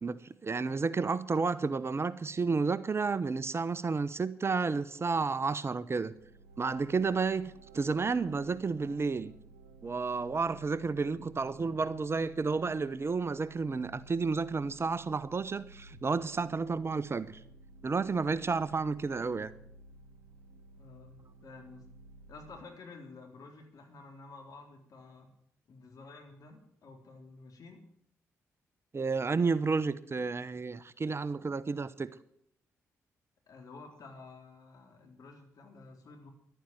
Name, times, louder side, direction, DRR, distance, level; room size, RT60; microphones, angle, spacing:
voice 1, 0.0-6.1 6.6-9.3 9.8-17.4 17.8-19.5 28.9-32.1, right 4 dB, 40° right, 0.9 m, -31 dB
sound 1, 6.1-22.6, right 2 dB, 90° right, 1.1 m, -55 dB
voice 2, 20.8-21.8 22.3-25.3 25.7-27.8 33.5-36.3, left 3 dB, 60° left, 3.8 m, -51 dB
12.0 x 9.3 x 9.2 m
hypercardioid pair, 45°, 7 cm